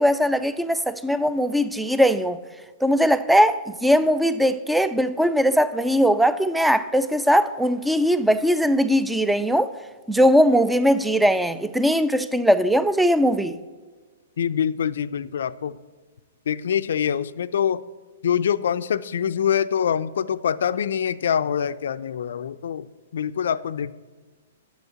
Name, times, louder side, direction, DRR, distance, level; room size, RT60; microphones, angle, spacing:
voice 1, 0.0-2.4 2.8-9.7 10.1-13.6, equal, ahead, 0.4 m, -20 dB
voice 2, 14.4-15.8 16.5-17.8 18.2-23.9, left 8 dB, 75° left, 0.4 m, -25 dB
8.0 x 6.4 x 7.9 m
hypercardioid pair, 145°, 0 cm